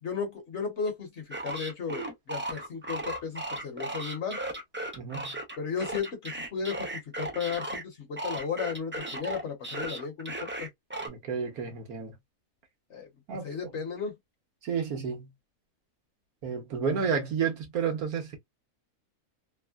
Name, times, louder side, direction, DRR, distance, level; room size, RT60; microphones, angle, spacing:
voice 1, 0.0-4.4 5.6-10.7 12.9-13.1 13.4-14.1, left 6 dB, 55° left, 1.3 m, -34 dB
sound 1, 1.3-7.8 8.2-11.1, right 1 dB, 20° right, 0.3 m, -35 dB
voice 2, 5.0-5.3 11.1-12.1 13.3-13.5 14.6-15.3 16.4-18.4, right 6 dB, 85° right, 1.5 m, -31 dB
3.6 x 2.1 x 2.3 m
omnidirectional pair, 1.5 m